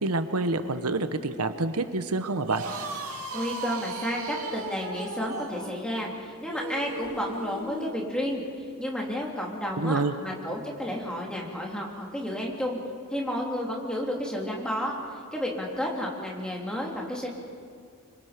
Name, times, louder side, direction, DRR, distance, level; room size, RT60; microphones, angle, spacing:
voice 1, 0.0-2.6 9.8-10.1, right 3 dB, 90° right, 9 dB, 1.1 m, -27 dB
sound 1, 2.4-8.0, right 3 dB, 70° right, 2.8 m, -36 dB
voice 2, 3.3-8.4 8.8-12.8 13.1-15.0 15.3-17.3, equal, 5° left, -2 dB, 3.1 m, -31 dB
26.5 x 24.5 x 5.2 m, 2.2 s
head